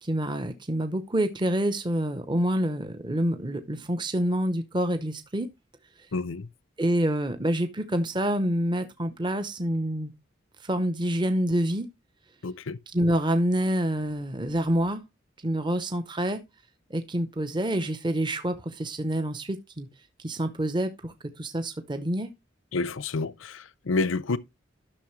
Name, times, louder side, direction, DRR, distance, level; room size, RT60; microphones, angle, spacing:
voice 1, 0.0-5.5 6.8-10.1 10.6-11.9 12.9-15.0 15.4-16.4 16.9-19.9 20.2-22.3, right 1 dB, 25° right, 0.7 m, -27 dB
voice 2, 6.1-6.5 12.4-12.8 22.7-24.4, left 3 dB, 75° left, 0.6 m, -29 dB
12.0 x 6.5 x 3.1 m
head